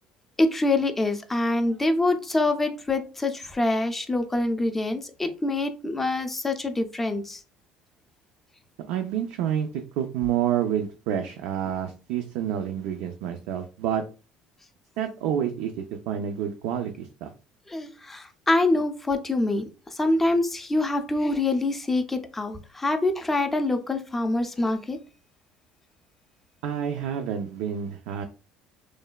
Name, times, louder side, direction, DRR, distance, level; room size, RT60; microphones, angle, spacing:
voice 1, 0.4-7.4 17.7-19.7 19.9-25.0, left 2 dB, 10° left, 7 dB, 0.3 m, -25 dB
voice 2, 8.8-14.0 15.0-17.3 26.6-28.3, right 9 dB, 80° right, 4 dB, 0.3 m, -28 dB
3.1 x 2.1 x 2.2 m, 0.33 s
cardioid pair, 145°, 2 cm